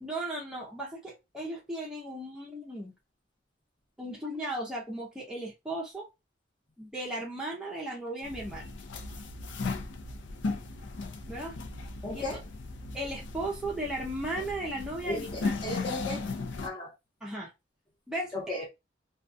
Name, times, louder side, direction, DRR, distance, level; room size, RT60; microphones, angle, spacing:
voice 1, 0.0-2.9 4.0-6.1 6.8-8.7 11.3-11.6 12.1-12.2 12.9-15.6 17.2-17.5 18.1-18.6, right 1 dB, 5° right, 0.6 m, -36 dB
sound 1, 8.2-16.7, left 3 dB, 70° left, 0.5 m, -37 dB
voice 2, 12.0-12.4 15.1-16.2 16.6-16.9 18.3-18.6, left 1 dB, 25° left, 0.9 m, -35 dB
2.3 x 2.2 x 2.6 m
head